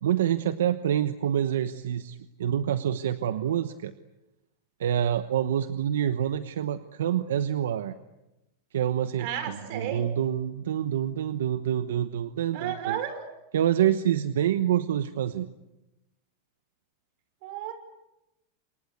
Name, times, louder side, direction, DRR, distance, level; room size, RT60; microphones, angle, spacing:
voice 1, 0.0-3.9 4.8-7.9 8.7-13.0 13.5-15.5, right 10 dB, 90° right, 11 dB, 1.0 m, -27 dB
voice 2, 9.2-10.1 12.5-13.2 17.4-17.7, right 9 dB, 60° right, 8 dB, 5.9 m, -33 dB
27.5 x 24.0 x 8.2 m, 0.94 s
supercardioid pair, 125°, 0 cm